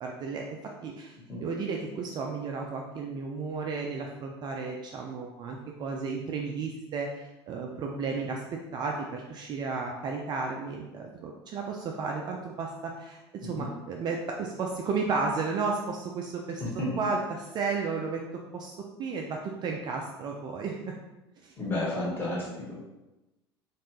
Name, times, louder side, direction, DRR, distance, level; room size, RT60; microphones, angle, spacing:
voice 1, 0.0-0.4 0.8-8.4 8.7-16.6 17.0-18.2 18.5-21.0 21.4-21.5, right 4 dB, 30° right, 0 dB, 0.4 m, -33 dB
voice 2, 21.6-22.8, left 1 dB, 15° left, -6 dB, 1.3 m, -31 dB
3.1 x 2.5 x 3.0 m, 1.0 s
figure-of-eight pair, 70°, 14 cm